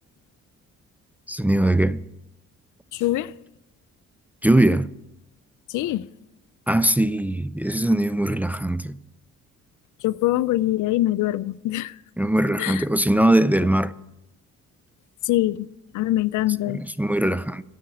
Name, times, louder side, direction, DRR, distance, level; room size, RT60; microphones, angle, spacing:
voice 1, 1.3-2.0 4.4-4.9 6.7-9.0 12.2-13.9 16.7-17.6, right 1 dB, 5° right, 0.4 m, -21 dB
voice 2, 2.9-3.3 5.7-6.1 10.0-12.0 12.6-12.8 15.2-15.7 15.9-16.8, left 15 dB, 80° left, 0.5 m, -23 dB
14.0 x 6.8 x 9.2 m
cardioid pair, 90°, 30 cm